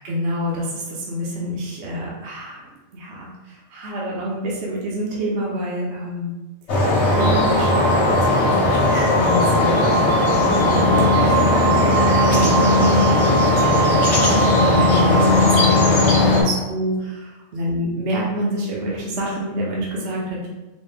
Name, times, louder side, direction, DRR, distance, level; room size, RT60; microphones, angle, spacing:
voice 1, 0.0-2.6 2.9-6.3 7.2-10.8 11.2-11.7 12.3-20.5, equal, 60° right, -4 dB, 0.9 m, -27 dB
sound 1, 6.7-16.4, left 2 dB, 60° left, 1.2 m, -17 dB
Wind instrument woodwind instrument, 7.1-16.0, right 3 dB, 75° right, 1.2 m, -24 dB
4.1 x 2.1 x 3.3 m, 1.1 s
omnidirectional pair, 1.4 m